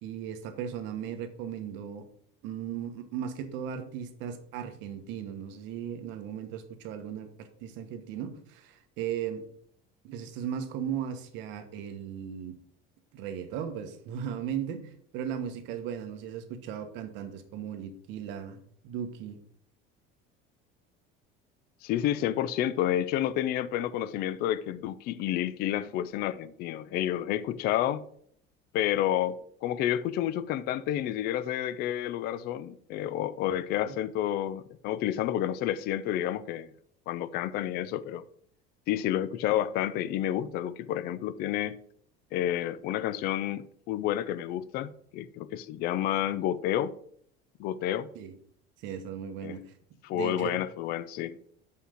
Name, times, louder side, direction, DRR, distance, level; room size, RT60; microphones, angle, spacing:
voice 1, 0.0-2.0 2.4-9.4 10.0-12.5 13.1-18.6 18.8-19.4 33.9-34.0 48.1-48.3 48.8-49.7 50.1-50.6, right 8 dB, 60° right, 1.2 m, -37 dB
voice 2, 21.8-28.0 28.7-36.7 37.1-38.2 38.9-41.8 42.3-46.9 47.6-48.1 49.4-49.6 50.0-51.4, left 11 dB, 45° left, 0.4 m, -30 dB
6.5 x 5.7 x 5.7 m
cardioid pair, 170°, 21 cm